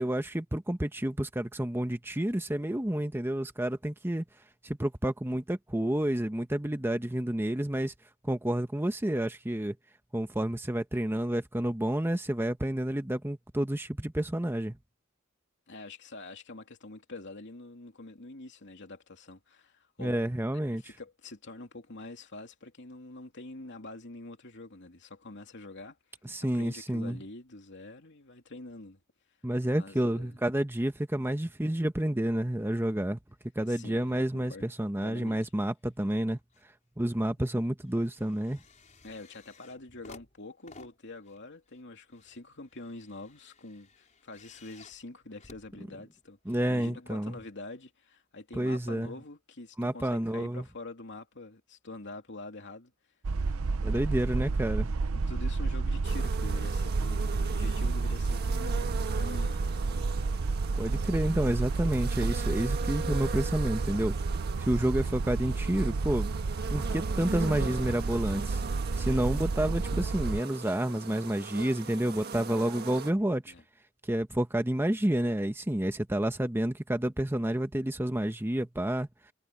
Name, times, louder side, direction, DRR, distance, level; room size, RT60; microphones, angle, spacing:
voice 1, 0.0-4.2 4.6-7.9 8.2-9.8 10.1-14.8 20.0-20.8 26.2-27.2 29.4-33.2 33.5-36.4 37.0-38.6 46.5-47.3 48.5-49.1 49.8-50.6 53.8-54.9 60.8-64.2 64.6-66.3 66.7-68.6 69.0-73.5 74.1-79.1, right 1 dB, 10° right, 0.9 m, -29 dB
voice 2, 15.7-20.2 20.5-26.0 26.5-29.0 29.7-30.4 33.6-34.7 35.0-35.4 39.0-52.9 53.9-54.1 55.1-59.7 73.5-73.6, left 2 dB, 60° left, 3.0 m, -46 dB
sound 1, 36.0-36.7 37.1-46.4 47.2-47.3, left 3 dB, 35° left, 4.8 m, -57 dB
sound 2, 53.2-70.4, right 3 dB, 85° right, 0.6 m, -30 dB
sound 3, 56.0-73.1, right 4 dB, 50° right, 1.5 m, -40 dB
head